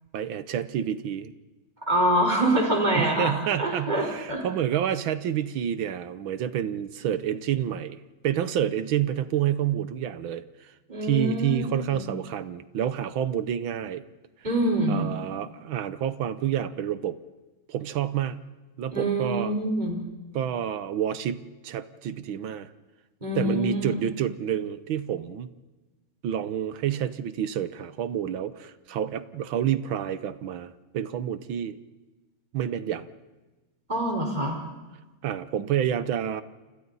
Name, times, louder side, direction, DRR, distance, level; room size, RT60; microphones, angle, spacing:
voice 1, 0.1-1.3 2.9-10.7 11.0-14.0 14.9-17.2 17.7-18.4 18.8-19.6 20.3-22.7 23.3-25.5 26.2-31.8 32.5-33.1 35.2-36.4, right 10 dB, 70° right, 13 dB, 1.7 m, -29 dB
voice 2, 1.9-4.4 10.9-11.6 11.9-12.1 14.4-15.1 18.9-20.0 23.2-23.9 33.9-34.6, right 1 dB, 20° right, 0 dB, 4.5 m, -25 dB
30.0 x 26.5 x 4.1 m, 1.2 s
omnidirectional pair, 2.3 m